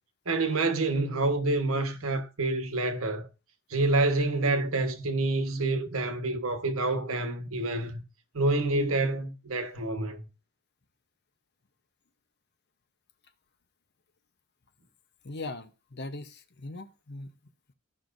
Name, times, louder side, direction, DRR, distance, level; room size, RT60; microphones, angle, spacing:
voice 1, 0.2-3.3 3.7-8.0 8.3-10.3, right 2 dB, 80° right, 1.2 m, -27 dB
voice 2, 15.2-17.3, left 2 dB, 50° left, 0.9 m, -40 dB
16.0 x 5.5 x 2.6 m
head